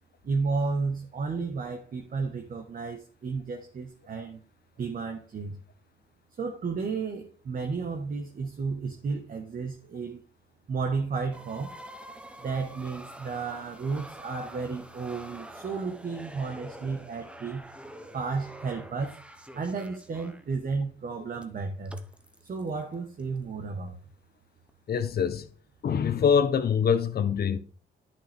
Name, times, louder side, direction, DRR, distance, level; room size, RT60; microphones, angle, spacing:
voice 1, 0.2-4.4 4.8-5.6 6.4-10.2 10.7-11.7 12.4-17.6 18.1-19.2 19.5-22.0 22.4-23.9, right 4 dB, 45° right, 1.3 m, -32 dB
sound 1, 11.3-20.5 21.4-21.5 21.9-23.9 24.7-24.8, right 1 dB, 5° right, 0.9 m, -46 dB
voice 2, 24.9-25.5 25.8-27.6, left 7 dB, 50° left, 1.0 m, -24 dB
10.5 x 5.9 x 3.5 m
cardioid pair, 90°, 20 cm